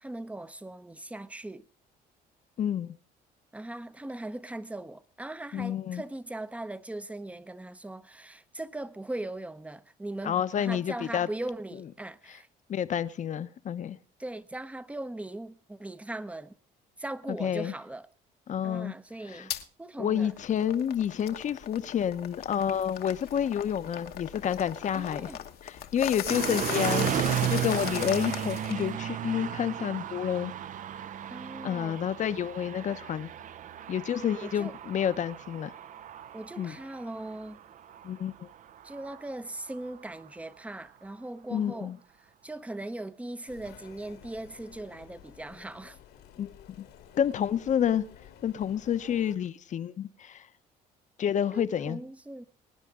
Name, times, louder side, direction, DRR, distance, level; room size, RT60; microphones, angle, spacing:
voice 1, 0.0-1.7 3.5-12.5 14.2-16.6 17.0-18.1 18.6-19.5 19.8-20.4 24.9-25.4 26.4-26.9 31.3-32.0 34.4-34.8 36.3-37.6 38.8-41.9 42.2-46.0 51.5-52.5, right 1 dB, 10° right, 0.7 m, -39 dB
voice 2, 2.6-2.9 5.5-6.0 10.2-11.3 12.7-14.0 17.4-17.7 18.5-18.9 19.3-19.4 20.0-25.3 25.6-30.5 31.6-33.3 33.9-35.7 36.6-36.8 38.0-38.3 41.5-42.0 46.4-46.8 47.2-48.0 48.4-50.5 51.2-52.0, left 9 dB, 45° left, 0.9 m, -29 dB
sound 1, 19.5-19.6 20.1-28.9, left 10 dB, 65° left, 1.2 m, -38 dB
sound 2, 26.3-40.3, right 10 dB, 50° right, 0.6 m, -35 dB
sound 3, 43.5-49.4, left 9 dB, 90° left, 2.6 m, -52 dB
23.0 x 9.8 x 3.7 m
cardioid pair, 110°, 17 cm